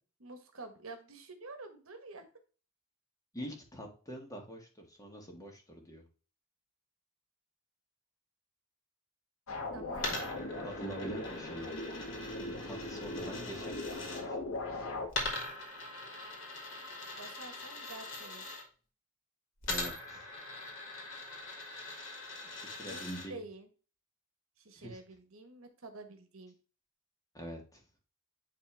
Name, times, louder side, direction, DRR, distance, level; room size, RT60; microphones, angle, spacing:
voice 1, 0.2-2.2 9.7-10.3 17.1-18.4 22.8-23.7 24.6-26.5, right 2 dB, 80° right, 6 dB, 1.4 m, -48 dB
voice 2, 3.3-6.0 10.1-10.3 10.6-11.8 12.4-14.4 19.7-20.3 22.4-23.4 24.8-25.0 27.3-27.8, right 1 dB, 15° left, 1 dB, 1.8 m, -45 dB
sound 1, 9.5-15.1, left 2 dB, 85° left, 1.7 m, -40 dB
Coin (dropping), 9.9-14.2 15.1-18.6 19.6-23.3, left 2 dB, 70° left, 2.6 m, -42 dB
10.0 x 3.5 x 3.4 m, 0.37 s
head